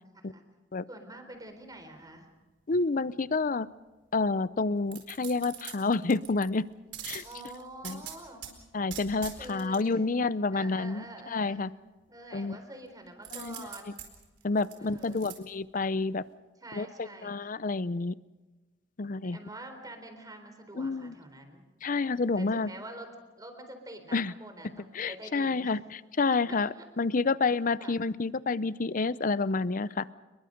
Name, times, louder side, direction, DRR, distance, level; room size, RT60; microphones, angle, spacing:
voice 1, 0.9-2.3 7.2-8.5 9.4-10.1 10.5-11.7 12.1-14.0 14.8-15.2 16.6-17.5 19.2-21.6 22.4-23.1 23.4-25.8 26.5-26.9 27.8-28.0, right 1 dB, 20° right, 6 dB, 4.0 m, -46 dB
voice 2, 2.7-3.7 4.1-6.6 7.0-7.2 7.8-8.0 8.7-11.0 11.3-11.7 12.3-12.6 13.3-13.5 14.4-16.2 16.7-18.1 19.0-19.4 20.7-21.1 21.8-22.7 24.1-24.3 24.9-25.8 26.2-26.7 27.0-30.0, left 3 dB, 45° left, 17 dB, 0.6 m, -29 dB
sound 1, 4.9-6.5 6.9-8.5 8.9-9.8 13.2-15.3 15.8-15.9, right 9 dB, 70° right, 4.5 m, -43 dB
29.0 x 22.0 x 5.2 m, 1.2 s
head